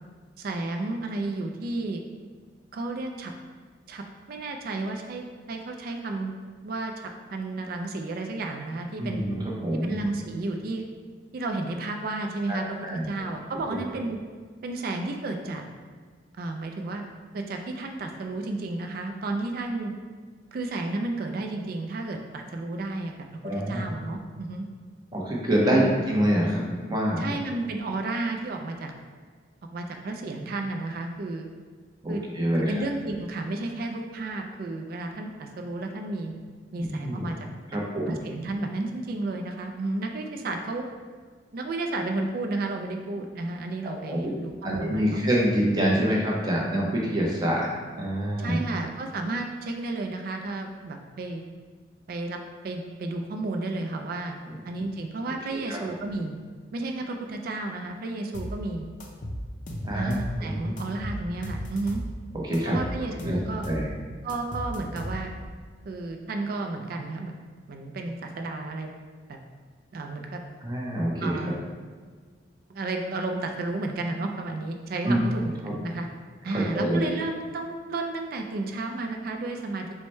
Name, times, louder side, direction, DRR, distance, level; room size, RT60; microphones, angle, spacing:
voice 1, 0.4-2.0 2.7-3.3 3.9-6.3 6.6-9.2 9.8-10.8 11.3-14.2 14.6-15.6 16.4-17.0 17.3-19.9 20.5-23.1 23.5-24.7 25.6-26.0 27.2-28.9 29.7-31.5 32.1-32.2 32.7-36.3 36.7-37.4 37.7-37.8 38.1-40.8 41.5-45.3 48.4-51.4 52.1-52.4 52.6-54.4 54.7-56.4 56.7-58.9 59.9-62.0 62.7-63.6 64.2-65.3 65.8-67.3 67.7-68.9 69.3-69.4 69.9-70.4 71.2-71.6 72.7-76.1 76.4-79.9, right 2 dB, 55° right, 4 dB, 0.3 m, -32 dB
voice 2, 9.0-9.4 9.6-10.0 12.5-13.0 23.4-23.9 25.1-25.8 26.1-27.3 32.0-32.7 36.8-37.3 37.7-38.2 43.8-44.3 44.6-47.7 48.0-48.6 55.5-55.8 59.8-60.7 62.4-62.8 63.1-63.4 63.6-63.9 70.6-71.4 75.1-75.2 75.6-75.7 76.7-77.0, equal, 25° right, -3 dB, 0.7 m, -26 dB
sound 1, 58.3-58.6 59.0-60.4 60.8-62.1 62.5-63.9 64.3-65.5, equal, 45° left, 0.5 m, -35 dB
4.7 x 2.1 x 4.2 m, 1.5 s
head